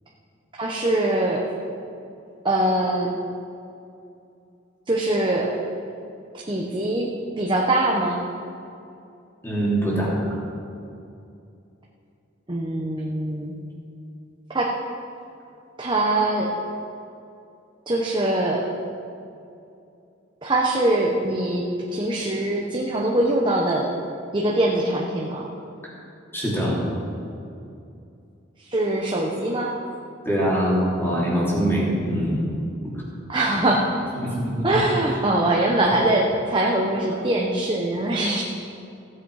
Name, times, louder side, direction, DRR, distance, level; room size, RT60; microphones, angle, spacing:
voice 1, 0.6-1.5 2.4-3.1 4.9-5.5 6.5-7.1 7.4-8.2 12.5-13.5 14.5-14.7 15.8-16.5 17.9-18.7 20.4-21.6 21.9-23.9 24.3-25.5 28.7-29.7 33.3-33.9 34.6-38.4, right 1 dB, 25° right, -2 dB, 0.9 m, -22 dB
voice 2, 9.4-10.1 26.3-26.8 30.2-32.5 34.2-34.7, equal, 10° left, -7 dB, 3.1 m, -23 dB
15.5 x 8.1 x 4.8 m, 2.6 s
head